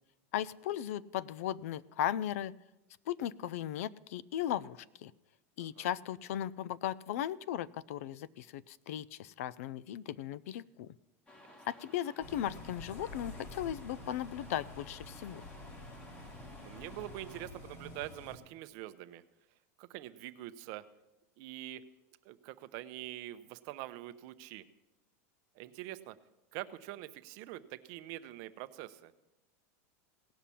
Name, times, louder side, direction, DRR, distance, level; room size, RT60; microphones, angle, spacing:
voice 1, 0.3-2.5 3.1-5.1 5.6-11.0 11.7-15.4, left 11 dB, 75° left, 20 dB, 0.5 m, -37 dB
sound 1, 11.3-17.5, left 1 dB, 15° left, 1.3 m, -56 dB
Bus, 12.2-18.4, left 2 dB, 35° left, 2.6 m, -49 dB
voice 2, 16.6-19.2 19.8-20.8 21.4-21.8 22.2-24.6 25.6-26.2 26.5-29.1, right 15 dB, 50° right, 12 dB, 0.7 m, -45 dB
17.0 x 5.8 x 8.4 m, 0.99 s
supercardioid pair, 150°, 8 cm